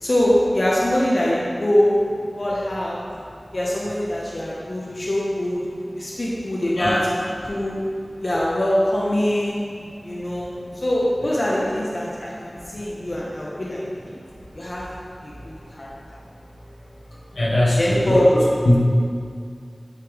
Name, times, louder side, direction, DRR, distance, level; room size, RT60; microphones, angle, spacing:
voice 1, 0.0-2.0 2.4-3.0 3.5-5.6 5.9-7.8 8.2-9.6 10.0-13.8 14.5-14.8 15.2-15.3 15.7-15.9 17.8-18.3, left 1 dB, 50° left, -6 dB, 0.9 m, -23 dB
voice 2, 17.4-18.8, left 1 dB, 90° left, -7 dB, 1.3 m, -19 dB
9.2 x 3.3 x 3.6 m, 2.3 s
wide cardioid pair, 60°, 0 cm